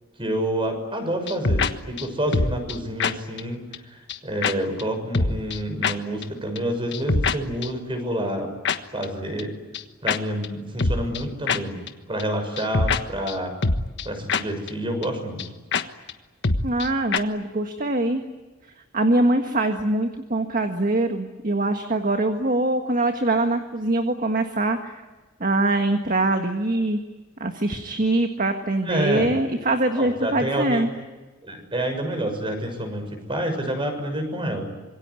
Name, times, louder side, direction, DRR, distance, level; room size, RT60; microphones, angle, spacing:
voice 1, 0.2-8.5 8.9-9.5 10.0-11.8 12.1-13.5 14.0-15.4 28.8-29.3 29.9-30.8 31.4-34.7, right 1 dB, 25° right, 6 dB, 6.4 m, -28 dB
sound 1, 1.3-1.7 2.0-2.1 2.3-2.7 3.0-3.1 3.4-3.5 3.7-3.8 4.1-4.2 4.4-4.5 4.8-4.9 5.1-5.6 5.8-5.9 6.2-6.3 6.6-6.7 6.9-7.3 7.6-7.7 8.6-8.8 9.0-9.1 9.4-9.5 9.7-9.8 10.1-10.2 10.4-10.5 10.8-11.2 11.5-11.6 11.9-12.0 12.2-12.3 12.6-13.0 13.3-13.4 13.6-14.0 14.3-14.4 14.7-14.8 15.0-15.1 15.4-15.5 15.7-15.8 16.1-16.2 16.4-16.9 17.1-17.2, left 4 dB, 60° left, 1.4 m, -23 dB
voice 2, 16.6-18.2 18.9-25.0 25.4-27.0 27.4-30.9, right 2 dB, 40° right, 6 dB, 1.7 m, -23 dB
26.5 x 22.5 x 9.7 m, 1.2 s
head